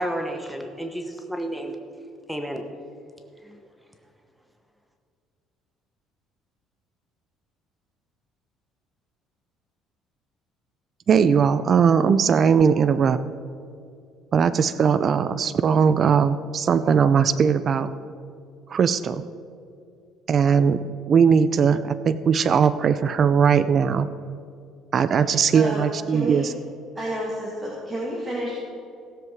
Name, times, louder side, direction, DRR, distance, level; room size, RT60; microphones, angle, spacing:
voice 1, 0.0-1.7 2.3-2.6, right 1 dB, 5° right, 5 dB, 1.0 m, -30 dB
voice 2, 11.1-13.2 14.3-17.9 18.7-19.2 20.3-24.1 24.9-26.5, right 6 dB, 40° right, 12 dB, 0.4 m, -19 dB
voice 3, 25.5-25.9 26.1-26.4 27.0-28.6, right 1 dB, 20° right, -5 dB, 2.3 m, -30 dB
17.0 x 7.6 x 4.7 m, 2.4 s
cardioid pair, 120°, 0 cm